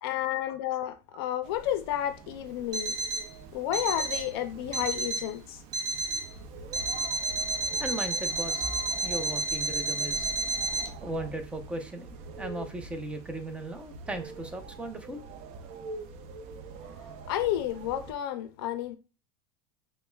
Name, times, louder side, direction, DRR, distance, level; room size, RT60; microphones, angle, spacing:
voice 1, 0.0-3.0 3.5-5.6 17.3-19.0, left 12 dB, 70° left, 0.4 m, -31 dB
sound 1, 1.4-18.1, right 4 dB, 55° right, 0.5 m, -44 dB
Alarm, 2.7-3.3 3.7-4.3 4.7-5.3 5.7-6.3 6.7-10.9, right 2 dB, 30° right, 1.0 m, -31 dB
voice 2, 7.8-8.7 9.0-10.3 11.0-15.3, right 1 dB, 10° right, 0.6 m, -37 dB
5.5 x 2.1 x 2.3 m
supercardioid pair, 125°, 13 cm